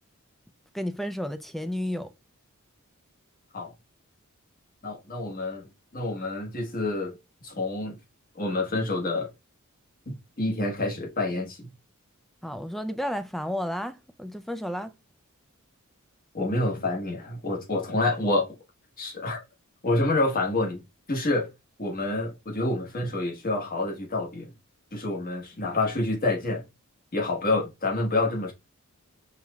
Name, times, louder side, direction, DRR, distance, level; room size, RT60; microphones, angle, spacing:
voice 1, 0.7-2.1 12.4-14.9, equal, ahead, 0.3 m, -32 dB
voice 2, 4.8-5.7 5.9-7.2 7.4-8.0 8.3-9.3 10.1-11.7 16.3-18.5 19.0-19.4 19.8-20.8 21.1-21.5 21.8-24.5 24.9-26.7 27.1-28.5, left 2 dB, 40° left, 1.2 m, -28 dB
5.5 x 3.1 x 2.3 m
head